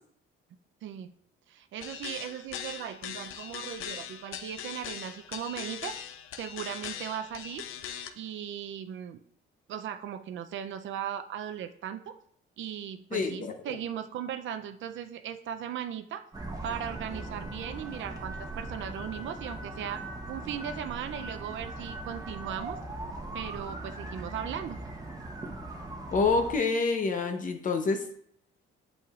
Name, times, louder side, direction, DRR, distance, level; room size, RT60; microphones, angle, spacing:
voice 1, 0.8-1.1 1.5-6.0 6.3-7.6 8.1-9.2 9.7-12.2 12.6-16.2 16.6-22.8 23.3-24.8, right 9 dB, 65° right, 8 dB, 0.5 m, -38 dB
sound 1, 1.8-8.1, left 9 dB, 75° left, 0.6 m, -40 dB
voice 2, 13.1-13.8 26.1-28.0, left 4 dB, 40° left, 6 dB, 0.7 m, -27 dB
sound 2, 16.3-26.5, right 2 dB, 15° right, 1.0 m, -40 dB
8.3 x 6.4 x 2.4 m, 0.65 s
cardioid pair, 140°, 21 cm